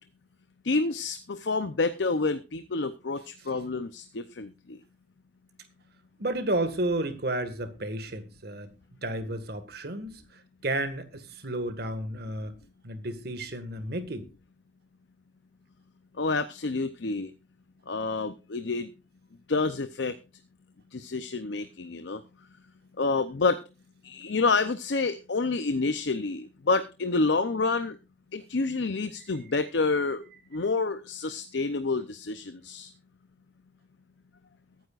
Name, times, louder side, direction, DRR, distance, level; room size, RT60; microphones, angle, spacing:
voice 1, 0.6-4.8 16.2-17.3 17.9-18.9 19.5-20.1 20.9-22.2 23.0-23.6 24.0-28.0 28.3-30.2 30.5-32.9, left 3 dB, 70° left, 11 dB, 0.7 m, -28 dB
voice 2, 6.2-8.7 9.0-12.6 12.8-14.3, right 1 dB, 55° right, 9 dB, 1.8 m, -32 dB
22.0 x 9.5 x 2.5 m, 0.29 s
head